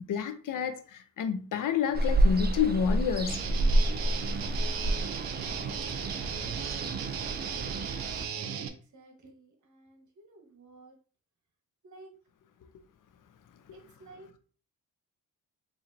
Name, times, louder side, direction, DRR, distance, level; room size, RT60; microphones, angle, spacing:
voice 1, 0.0-3.4, left 7 dB, 60° left, 0.6 m, -29 dB
Ocean, 1.9-8.2, right 1 dB, 30° right, 0.6 m, -29 dB
Guitar, 3.3-8.7, right 7 dB, 80° right, 0.6 m, -36 dB
voice 2, 8.2-10.9 11.8-12.1 13.7-14.4, right 2 dB, 55° right, 1.2 m, -53 dB
4.3 x 2.7 x 2.6 m
cardioid pair, 70°, 35 cm